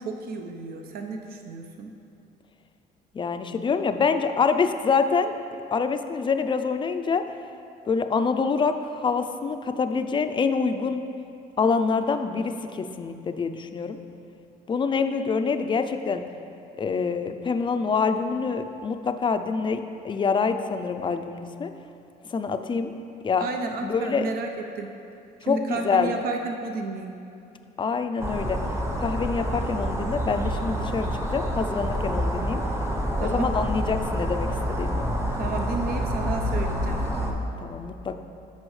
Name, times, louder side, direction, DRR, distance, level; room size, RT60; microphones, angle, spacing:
voice 1, 0.0-1.9 23.4-25.0 25.4-27.1 33.2-33.5 35.4-37.4, right 4 dB, 60° right, 4 dB, 0.8 m, -32 dB
voice 2, 3.1-5.3 5.7-7.2 7.9-11.0 11.6-14.0 14.7-16.2 16.8-21.7 22.3-22.9 23.2-23.4 23.8-24.3 25.4-26.1 27.8-28.6 29.0-32.6 33.2-35.1 37.6-38.2, left 5 dB, 30° left, 8 dB, 0.4 m, -26 dB
sound 1, 28.2-37.3, equal, 15° right, 0.9 m, -27 dB
14.0 x 5.4 x 3.2 m, 2.6 s
cardioid pair, 110°, 17 cm